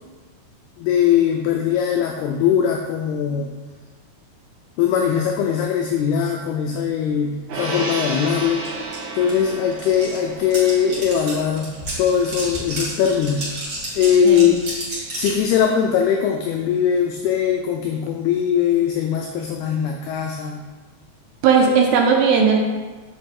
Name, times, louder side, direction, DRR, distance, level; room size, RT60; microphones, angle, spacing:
voice 1, 0.8-3.5 4.8-8.7 9.1-13.6 14.0-14.6 15.2-20.7, left 8 dB, 90° left, 3 dB, 2.2 m, -20 dB
Gong, 7.5-14.1 14.4-14.6, right 3 dB, 55° right, 2.7 m, -33 dB
sound 1, 8.6-8.7 8.9-15.4, right 1 dB, 30° right, 2.4 m, -31 dB
voice 2, 21.4-22.6, right 6 dB, 75° right, 1 dB, 2.6 m, -16 dB
7.8 x 6.2 x 4.4 m, 1.3 s
omnidirectional pair, 5.2 m